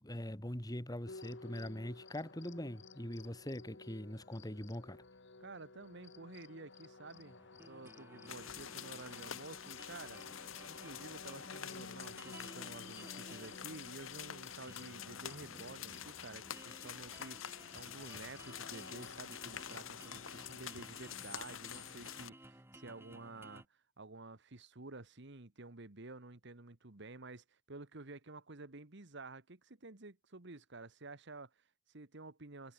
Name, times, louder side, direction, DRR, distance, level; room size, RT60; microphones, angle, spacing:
voice 1, 0.0-5.0, left 1 dB, 20° left, 3.1 m, -42 dB
sound 1, 1.1-20.6, left 3 dB, 60° left, 1.6 m, -54 dB
voice 2, 5.4-7.4 7.7-10.2 10.6-32.7, right 3 dB, 55° right, 1.5 m, -51 dB
sound 2, 7.1-23.6, right 1 dB, 10° right, 3.6 m, -57 dB
sound 3, 8.3-22.3, left 9 dB, 75° left, 1.4 m, -48 dB
head